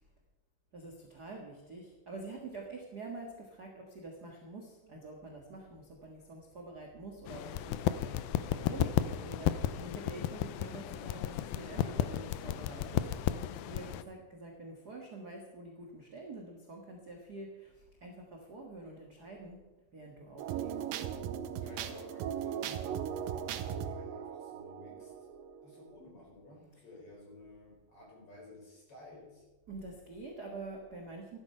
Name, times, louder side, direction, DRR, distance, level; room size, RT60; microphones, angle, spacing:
voice 1, 0.7-7.8 8.1-13.3 13.7-19.6 19.9-20.8 29.7-31.4, right 2 dB, 40° right, 0 dB, 1.6 m, -47 dB
sound 1, 7.3-14.0, left 12 dB, 90° left, 2.4 m, -33 dB
sound 2, 20.4-25.9, right 9 dB, 90° right, 2.5 m, -38 dB
voice 2, 21.4-23.0 23.2-25.3 25.6-29.5, left 2 dB, 40° left, -2 dB, 5.4 m, -54 dB
14.0 x 12.0 x 5.6 m, 1.1 s
omnidirectional pair, 4.0 m